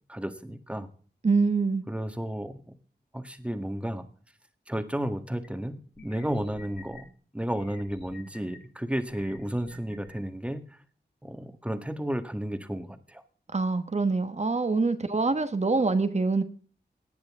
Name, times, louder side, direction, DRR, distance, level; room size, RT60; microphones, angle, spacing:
voice 1, 0.1-0.9 1.9-2.6 3.1-4.0 4.7-7.1 7.3-10.6 11.2-13.2, right 1 dB, 5° right, 8 dB, 1.6 m, -32 dB
voice 2, 1.2-1.8 13.5-16.4, right 3 dB, 40° right, 9 dB, 1.1 m, -25 dB
sound 1, 5.4-5.5 6.0-7.0 7.5-8.6 9.1-10.1, left 3 dB, 80° left, 7.3 m, -49 dB
17.5 x 10.5 x 3.6 m, 0.43 s
wide cardioid pair, 95°, 17 cm